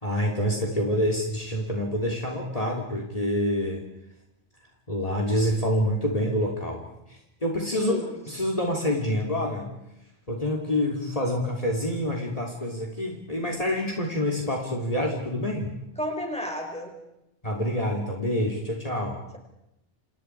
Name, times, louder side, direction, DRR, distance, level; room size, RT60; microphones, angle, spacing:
voice 1, 0.0-3.8 4.9-6.8 7.1-7.9 8.3-9.7 10.3-15.8 17.4-19.2, left 1 dB, 35° left, 1 dB, 3.3 m, -27 dB
voice 2, 7.7-8.1 16.0-16.9, equal, 5° left, 2 dB, 5.3 m, -31 dB
30.0 x 28.0 x 4.8 m, 0.86 s
omnidirectional pair, 1.1 m